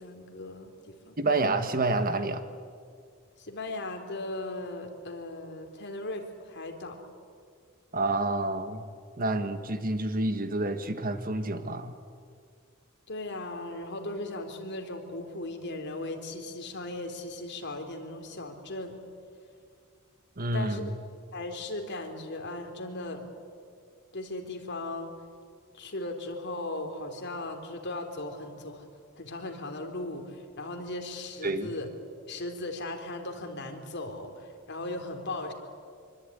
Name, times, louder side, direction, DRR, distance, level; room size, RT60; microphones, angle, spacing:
voice 1, 0.0-1.2 3.4-7.0 13.1-19.0 20.5-20.8 21.3-23.3 24.1-25.1 25.7-28.9 29.2-31.9 32.3-35.5, left 2 dB, 55° left, 4 dB, 3.6 m, -37 dB
voice 2, 1.2-2.4 7.9-8.8 9.2-11.9 20.4-20.9 31.4-31.7, right 2 dB, 40° right, 9 dB, 1.5 m, -28 dB
25.5 x 24.0 x 9.8 m, 2.2 s
head